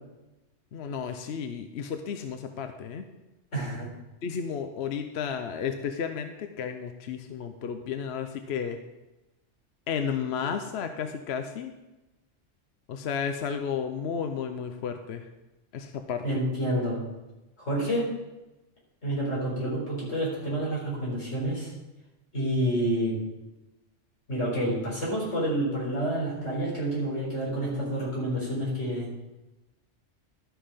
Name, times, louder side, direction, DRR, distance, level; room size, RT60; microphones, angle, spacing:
voice 1, 0.7-3.1 4.2-8.8 9.9-11.7 12.9-15.3 15.7-16.4, left 7 dB, 65° left, 7 dB, 0.9 m, -33 dB
voice 2, 3.5-3.9 16.2-17.0 17.6-18.1 19.0-21.7 22.3-23.2 24.3-29.1, right 1 dB, 90° left, -6 dB, 4.6 m, -28 dB
13.0 x 5.6 x 5.0 m, 1.0 s
omnidirectional pair, 1.3 m